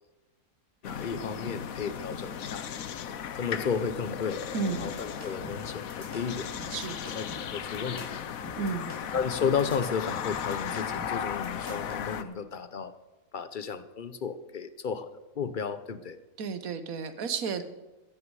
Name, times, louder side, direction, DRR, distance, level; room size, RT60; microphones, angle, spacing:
sound 1, 0.8-12.2, left 8 dB, 70° left, 1.2 m, -36 dB
voice 1, 0.8-2.7 3.4-4.4 4.8-6.5 7.1-8.2 9.1-12.9 13.3-15.1 15.4-16.2, left 6 dB, 40° left, 12 dB, 0.8 m, -33 dB
voice 2, 4.5-4.9 6.7-7.0 8.6-8.9 16.4-17.6, right 5 dB, 70° right, 11 dB, 1.5 m, -32 dB
sound 2, 4.7-12.0, left 1 dB, 15° left, 2.7 m, -45 dB
16.0 x 13.5 x 4.8 m, 1.1 s
omnidirectional pair, 1.6 m